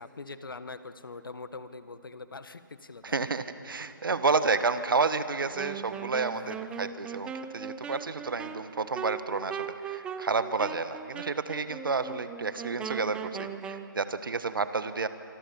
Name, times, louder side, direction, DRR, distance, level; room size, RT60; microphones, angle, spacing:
voice 1, 0.0-3.3 5.4-5.6 6.3-6.9 8.3-8.4, left 3 dB, 75° left, 11 dB, 1.5 m, -44 dB
voice 2, 3.0-15.1, right 4 dB, 75° right, 11 dB, 1.4 m, -30 dB
Wind instrument woodwind instrument, 5.5-13.9, right 7 dB, 10° right, 0.7 m, -39 dB
25.5 x 25.5 x 7.1 m, 2.6 s
figure-of-eight pair, 145°, 11 cm